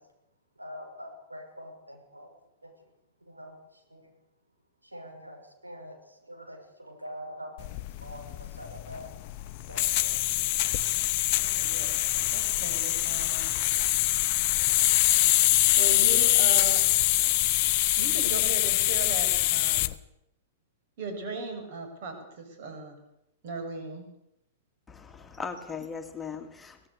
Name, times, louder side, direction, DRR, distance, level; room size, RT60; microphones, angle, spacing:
voice 1, 0.6-2.3 2.6-2.7 3.2-3.6 3.9-4.1 4.8-7.7 8.0-9.1 9.7-10.1, equal, 85° right, 2 dB, 6.3 m, -44 dB
sound 1, 7.6-19.9, left 16 dB, 40° left, 0.9 m, -24 dB
voice 2, 11.6-12.1 12.3-13.5 15.7-16.8 18.0-19.9 21.0-22.9 23.4-24.1, right 4 dB, 50° right, 6 dB, 6.9 m, -37 dB
voice 3, 24.9-26.9, left 5 dB, 10° left, 5 dB, 2.2 m, -38 dB
24.0 x 18.0 x 6.9 m, 0.83 s
figure-of-eight pair, 100°, 0 cm